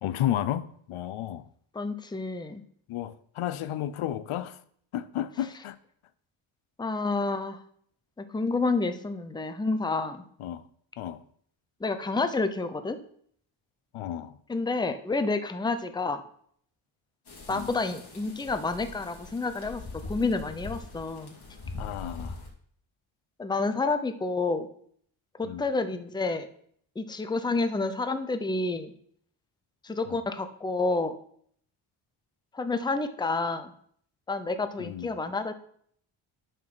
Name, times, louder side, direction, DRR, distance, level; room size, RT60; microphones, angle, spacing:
voice 1, 0.0-1.5 2.9-4.6 4.9-5.8 10.4-10.6 11.0-11.2 13.9-14.3 17.5-17.7 21.8-22.4 25.4-25.6 30.1-30.2 34.8-35.1, left 12 dB, 75° left, 0.6 m, -32 dB
voice 2, 1.7-2.6 6.8-7.6 8.2-10.2 11.8-13.0 14.5-16.2 17.5-19.8 20.1-21.3 23.4-24.7 25.4-26.5 27.0-28.9 29.8-31.2 32.5-33.7 34.3-35.5, left 3 dB, 10° left, 0.6 m, -29 dB
sound 1, 17.2-22.5, left 3 dB, 50° left, 2.4 m, -42 dB
9.2 x 4.0 x 6.0 m
cardioid pair, 100°, 50 cm